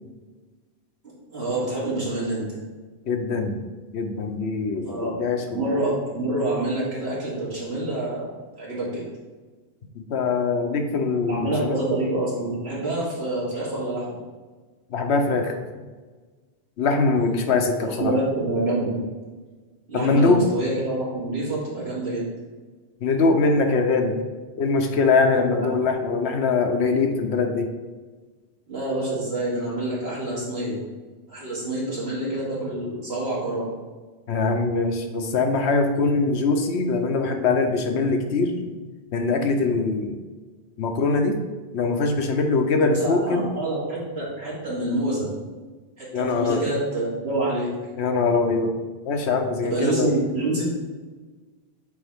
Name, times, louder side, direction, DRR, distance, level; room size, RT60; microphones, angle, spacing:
voice 1, 1.3-2.6 4.8-5.1 5.5-8.3 8.6-9.0 11.2-14.2 17.2-17.4 17.8-19.0 19.9-22.3 25.3-25.4 28.7-30.8 31.3-33.7 42.8-45.3 46.0-47.7 49.6-50.6, right 2 dB, 75° right, -7 dB, 2.4 m, -27 dB
voice 2, 3.1-3.6 3.9-5.7 10.1-11.8 14.9-15.6 16.8-18.1 19.9-20.4 23.0-24.1 24.6-27.7 34.3-38.8 39.1-40.1 40.8-41.4 41.7-43.5 46.1-46.7 48.0-48.7 49.1-50.1, left 4 dB, 90° left, 5 dB, 1.0 m, -22 dB
8.1 x 3.5 x 3.5 m, 1.4 s
omnidirectional pair, 1.1 m